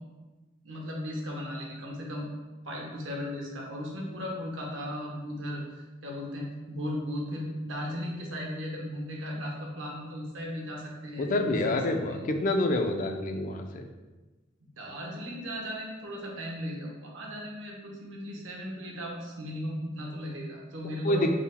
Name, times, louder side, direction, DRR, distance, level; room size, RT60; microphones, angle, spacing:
voice 1, 0.6-2.3 2.6-12.2 14.8-21.3, equal, 75° right, -1 dB, 0.8 m, -36 dB
voice 2, 11.2-13.8 21.0-21.3, left 1 dB, 40° left, 5 dB, 0.3 m, -27 dB
3.7 x 2.1 x 4.1 m, 1.2 s
head